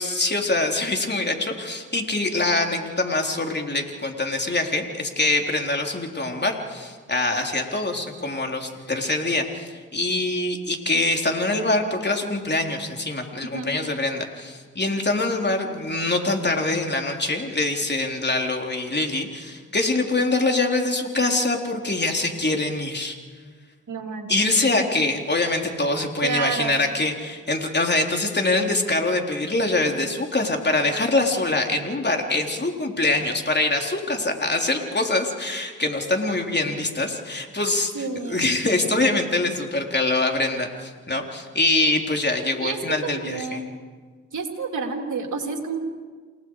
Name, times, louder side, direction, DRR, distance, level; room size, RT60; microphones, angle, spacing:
voice 1, 0.0-23.2 24.3-43.6, left 2 dB, 30° left, 2 dB, 3.9 m, -24 dB
voice 2, 23.9-24.6 26.2-26.8 37.9-38.5 42.6-43.7 44.3-45.8, right 5 dB, 55° right, 2 dB, 3.5 m, -30 dB
29.0 x 18.5 x 4.9 m, 1.5 s
supercardioid pair, 45°, 36 cm